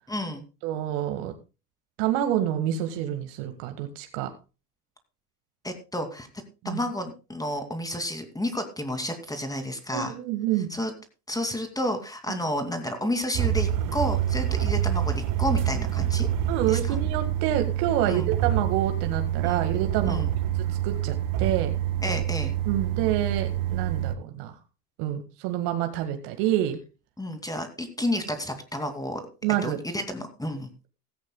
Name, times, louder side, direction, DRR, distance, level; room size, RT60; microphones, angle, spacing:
voice 1, 0.1-0.4 5.6-6.3 6.6-10.1 10.7-10.9 11.3-16.3 16.7-17.0 18.1-18.3 19.4-19.6 20.1-20.3 22.0-22.5 27.2-29.2 29.6-30.7, left 1 dB, 10° left, 7 dB, 2.5 m, -31 dB
voice 2, 0.6-1.3 2.0-4.3 6.6-6.8 9.9-10.7 12.3-12.4 16.5-20.3 20.7-21.7 22.7-24.6 25.0-26.8 29.4-29.8, right 11 dB, 60° right, 6 dB, 1.9 m, -27 dB
sound 1, 13.3-24.1, right 11 dB, 45° right, 1.2 m, -26 dB
16.0 x 15.0 x 2.3 m, 0.31 s
hypercardioid pair, 75°, 46 cm